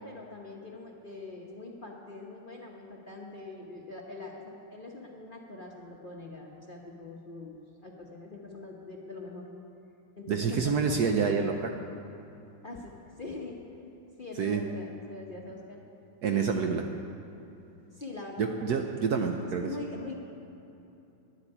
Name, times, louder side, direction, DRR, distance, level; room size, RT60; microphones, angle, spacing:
voice 1, 0.0-9.5 10.2-11.2 12.6-13.6 14.2-15.8 16.3-16.8 17.9-19.0 19.4-20.1, left 2 dB, 35° left, -2 dB, 1.0 m, -43 dB
voice 2, 10.3-11.7 14.4-14.6 16.2-16.8 18.4-19.7, right 5 dB, 65° right, 4 dB, 1.0 m, -27 dB
11.0 x 8.3 x 9.8 m, 2.9 s
omnidirectional pair, 2.1 m